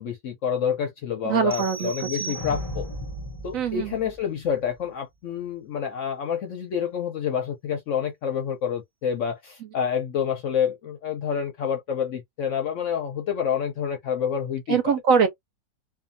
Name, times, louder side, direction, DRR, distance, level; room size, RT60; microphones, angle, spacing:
voice 1, 0.0-2.9 3.4-14.9, left 8 dB, 65° left, 0.8 m, -28 dB
voice 2, 1.2-2.3 3.5-4.0 14.7-15.3, right 6 dB, 70° right, 0.8 m, -23 dB
sound 1, 1.5-3.0, right 5 dB, 15° right, 0.8 m, -37 dB
sound 2, 2.3-4.8, left 1 dB, 45° left, 0.3 m, -35 dB
2.6 x 2.3 x 2.5 m
omnidirectional pair, 1.7 m